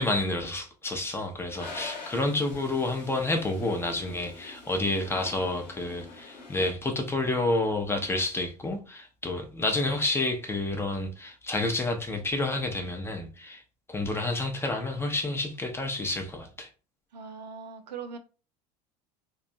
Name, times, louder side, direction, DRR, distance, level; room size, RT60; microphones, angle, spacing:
voice 1, 0.0-13.6 13.9-16.7, left 2 dB, 10° left, 0.5 m, -29 dB
Toilet flush, 1.5-6.7, left 3 dB, 85° left, 0.9 m, -45 dB
voice 2, 17.1-18.2, right 6 dB, 80° right, 0.4 m, -40 dB
2.5 x 2.2 x 2.6 m
figure-of-eight pair, 75°, 21 cm